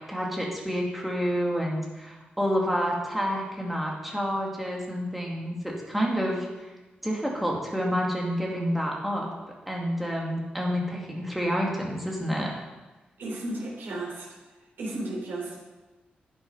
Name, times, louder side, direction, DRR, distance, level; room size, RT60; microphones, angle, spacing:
voice 1, 0.0-6.7 7.0-9.3 9.7-12.5, equal, 5° right, -2 dB, 2.1 m, -29 dB
voice 2, 13.2-14.3 14.8-15.6, right 2 dB, 80° right, -3 dB, 3.4 m, -34 dB
11.5 x 8.9 x 5.5 m, 1.2 s
wide cardioid pair, 175°, 3 cm